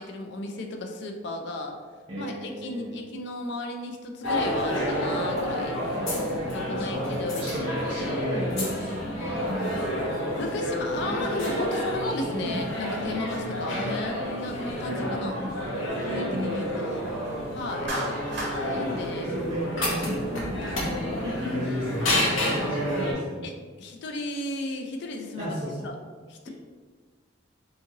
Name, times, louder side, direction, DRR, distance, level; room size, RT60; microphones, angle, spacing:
voice 1, 0.0-1.8 2.2-5.8 6.5-7.7 10.4-15.3 16.1-17.1 17.5-18.0 18.7-19.4 21.6-22.6 23.4-25.6 25.8-26.0 26.3-26.5, left 2 dB, 65° left, 4 dB, 0.4 m, -34 dB
voice 2, 2.1-3.1 5.9-6.3 6.6-10.0 12.4-12.6 13.0-13.9 14.9-15.6 16.3-17.4 18.9-23.5 25.4-25.9, equal, 35° right, -8 dB, 0.5 m, -34 dB
sound 1, 4.2-23.1, equal, 85° left, 0.7 m, -29 dB
Clapping, 17.9-18.6, right 1 dB, 65° right, 0.7 m, -31 dB
2.7 x 2.6 x 2.7 m, 1.5 s
head